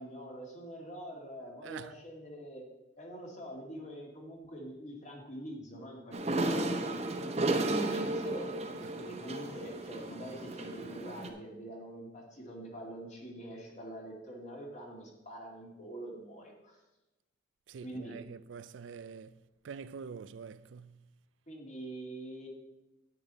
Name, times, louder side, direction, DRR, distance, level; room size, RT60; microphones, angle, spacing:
voice 1, 0.0-2.7 3.0-6.8 7.3-8.5 9.0-16.8 17.8-18.2 21.5-22.5, right 1 dB, 40° left, 2.1 m, -44 dB
voice 2, 1.6-1.9 17.7-19.4 19.6-21.0, right 6 dB, 75° right, 0.4 m, -45 dB
sound 1, 6.1-11.3, right 2 dB, 35° right, 0.9 m, -34 dB
9.8 x 9.0 x 4.1 m
head